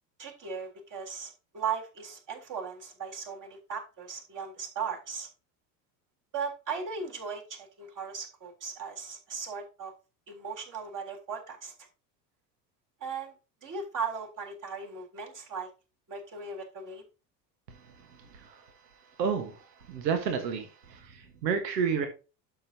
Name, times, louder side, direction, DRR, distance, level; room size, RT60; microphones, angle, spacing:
voice 1, 0.2-5.3 6.3-9.9 10.3-11.7 13.0-13.3 13.6-15.7 16.1-17.0, right 5 dB, 35° right, 0 dB, 3.6 m, -37 dB
voice 2, 18.3-18.6 19.2-19.6 19.9-22.1, right 6 dB, 75° right, 7 dB, 1.4 m, -30 dB
12.0 x 6.2 x 2.8 m, 0.31 s
figure-of-eight pair, 75°, 50 cm